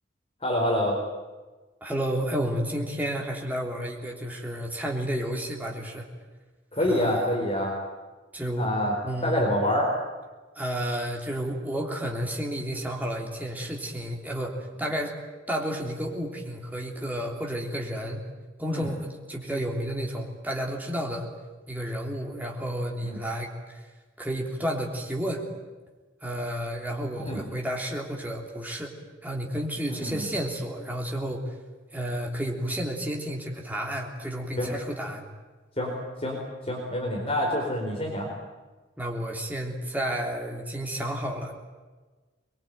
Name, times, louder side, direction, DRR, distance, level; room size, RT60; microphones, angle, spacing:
voice 1, 0.4-1.0 6.7-7.7 8.6-9.0 9.2-9.9 18.7-18.9 23.0-23.2 27.2-27.4 29.9-30.3 34.6-34.7 35.8-35.9 36.2-36.4 36.7-38.3, left 1 dB, 30° left, -1 dB, 4.3 m, -26 dB
voice 2, 1.8-6.1 6.9-7.3 8.3-8.7 9.0-9.5 10.6-15.2 15.5-18.2 18.6-21.3 21.7-23.8 24.2-25.4 26.2-28.9 29.2-31.4 31.9-35.2 39.0-41.5, equal, 10° right, 0 dB, 3.5 m, -31 dB
24.0 x 22.0 x 9.4 m, 1.3 s
head